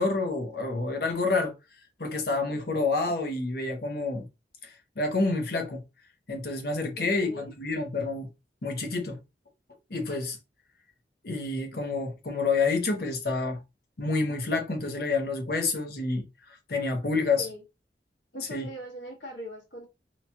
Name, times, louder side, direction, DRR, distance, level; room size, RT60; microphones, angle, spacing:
voice 1, 0.0-1.5 2.0-4.3 4.6-5.8 6.3-8.3 8.6-9.2 9.9-10.4 11.2-13.6 14.0-17.5 18.5-18.7, left 3 dB, 55° left, 0.7 m, -28 dB
voice 2, 7.0-7.4 17.4-17.6 18.3-19.9, equal, 75° left, 1.2 m, -40 dB
2.9 x 2.3 x 2.8 m
head